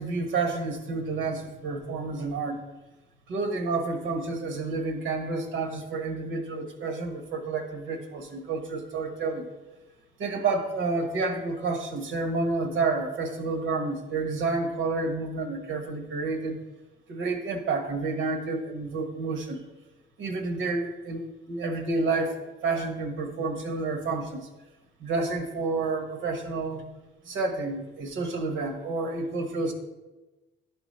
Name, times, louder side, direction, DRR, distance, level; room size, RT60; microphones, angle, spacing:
voice 1, 0.0-2.6 3.3-9.5 10.2-16.6 17.1-19.6 20.2-22.3 22.6-24.5 25.0-26.9 27.2-29.7, right 3 dB, 80° right, 4 dB, 1.2 m, -29 dB
11.5 x 3.8 x 4.2 m, 1.1 s
cardioid pair, 90°, 20 cm